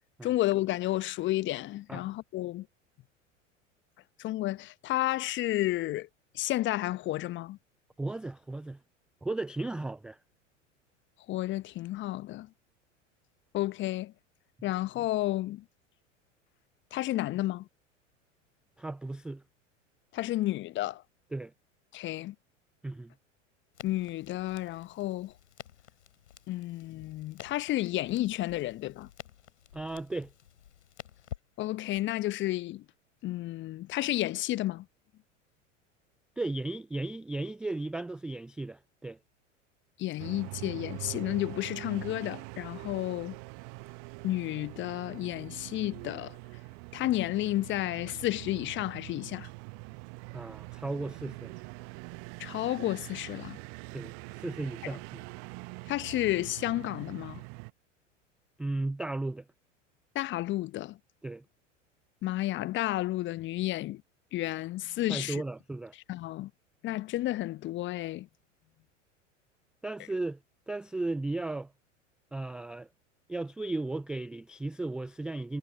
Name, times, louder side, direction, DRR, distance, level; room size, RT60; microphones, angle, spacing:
voice 1, 0.2-2.7 4.2-6.1 6.3-7.6 11.3-12.5 13.5-14.1 14.6-15.6 16.9-17.7 20.1-21.0 21.9-22.3 23.8-25.3 26.5-29.1 31.6-32.8 33.2-34.8 40.0-43.4 44.2-46.4 46.9-49.5 52.4-53.6 55.9-57.4 60.1-61.0 62.2-64.0 64.3-65.4 66.1-66.5 66.8-68.3, left 16 dB, 30° left, 1.0 m, -31 dB
voice 2, 8.0-8.8 9.2-10.2 18.8-19.4 21.3-21.5 22.8-23.1 29.7-30.3 36.4-39.2 50.3-51.5 53.9-55.2 58.6-59.4 61.2-61.4 65.1-65.9 69.8-70.4 70.7-71.7 72.3-72.9 73.3-75.6, right 2 dB, ahead, 0.3 m, -35 dB
Crackle, 23.7-32.0, left 10 dB, 65° left, 7.1 m, -50 dB
sound 1, 40.2-57.7, right 40 dB or more, 45° right, 1.2 m, -44 dB
figure-of-eight pair, 85°, 38 cm